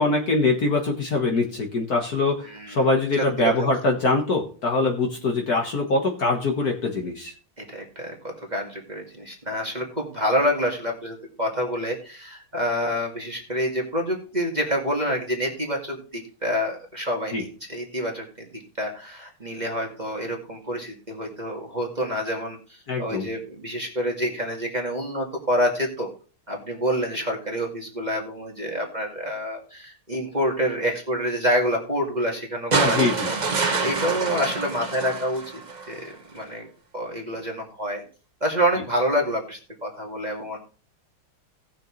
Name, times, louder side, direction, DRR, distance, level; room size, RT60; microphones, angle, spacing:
voice 1, 0.0-7.3 17.3-17.4 22.9-23.3 32.8-33.3, left 3 dB, 45° left, 2 dB, 1.9 m, -23 dB
voice 2, 2.5-2.8 3.2-3.7 7.6-8.2 8.5-22.6 23.0-26.1 26.5-33.3 33.8-35.4 35.9-36.7 36.9-38.0 38.4-40.6, equal, 20° right, -1 dB, 2.0 m, -27 dB
sound 1, 32.7-36.0 37.3-37.4, right 4 dB, 35° right, 0.7 m, -26 dB
18.0 x 6.7 x 3.2 m, 0.38 s
omnidirectional pair, 2.4 m